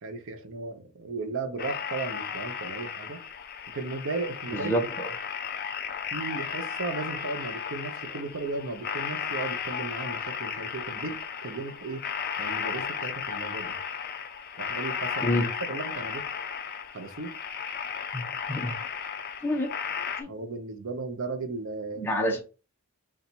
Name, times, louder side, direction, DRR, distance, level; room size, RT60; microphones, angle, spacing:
voice 1, 0.0-3.2 3.7-4.7 6.1-12.0 12.4-13.8 14.6-16.3 16.9-17.4 20.3-22.1, right 3 dB, 60° right, 0.7 m, -35 dB
sound 1, 1.6-20.2, left 7 dB, 45° left, 0.4 m, -34 dB
voice 2, 4.5-5.1 15.2-15.5 18.1-18.2 18.5-18.7 19.4-19.7 20.2-20.3 22.0-22.4, equal, 10° left, 0.8 m, -27 dB
4.0 x 2.4 x 4.3 m
head